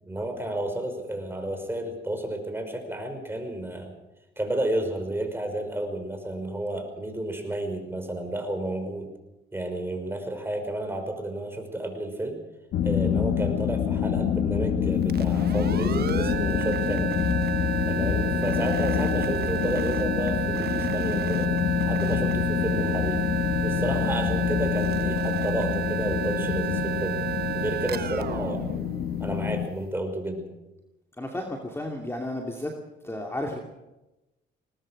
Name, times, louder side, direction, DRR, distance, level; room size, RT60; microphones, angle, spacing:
voice 1, 0.0-3.9 4.4-9.1 9.5-12.4 12.8-17.1 17.8-21.5 21.8-23.2 23.6-27.2 27.5-28.8 29.2-30.5, right 1 dB, 10° right, 5 dB, 5.5 m, -31 dB
sound 1, 12.7-29.7, left 9 dB, 80° left, 1.4 m, -26 dB
sound 2, 15.0-29.6, right 10 dB, 50° right, 1.2 m, -31 dB
voice 2, 31.2-32.7 33.0-33.6, left 1 dB, 10° left, 1 dB, 2.6 m, -32 dB
22.0 x 19.0 x 6.6 m, 0.99 s
cardioid pair, 90°, 20 cm